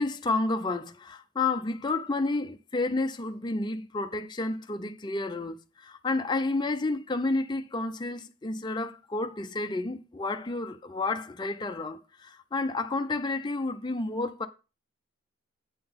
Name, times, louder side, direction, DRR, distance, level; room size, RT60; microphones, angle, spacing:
voice 1, 0.0-14.5, left 3 dB, 20° left, 0.5 m, -30 dB
7.9 x 3.9 x 5.1 m
head